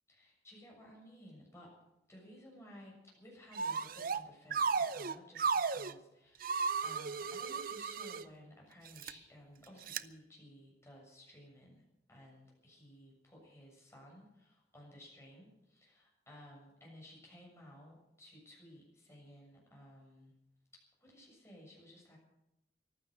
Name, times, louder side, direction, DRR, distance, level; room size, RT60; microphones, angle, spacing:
voice 1, 0.1-1.8 2.1-20.3 21.0-22.2, equal, 15° left, -2 dB, 6.9 m, -56 dB
sound 1, 3.5-4.2 4.5-5.9 6.4-8.2 8.9-9.1 9.9-10.0, right 5 dB, 55° right, 0.6 m, -34 dB
15.0 x 12.5 x 7.8 m, 0.88 s
head